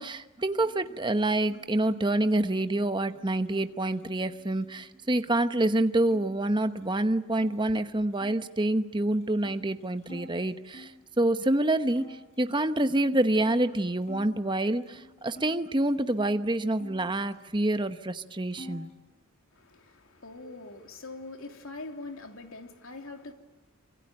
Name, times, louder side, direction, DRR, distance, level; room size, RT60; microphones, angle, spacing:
voice 1, 0.0-18.9, right 1 dB, 20° right, 1.0 m, -27 dB
sound 1, 0.5-6.2 6.5-7.6 8.1-11.0 11.5-11.6 11.9-14.3 14.7-16.3 16.7-17.8 18.1-19.0, equal, 30° left, 6.5 m, -51 dB
voice 2, 19.5-23.3, left 2 dB, 75° left, 3.1 m, -43 dB
26.0 x 25.5 x 8.9 m
head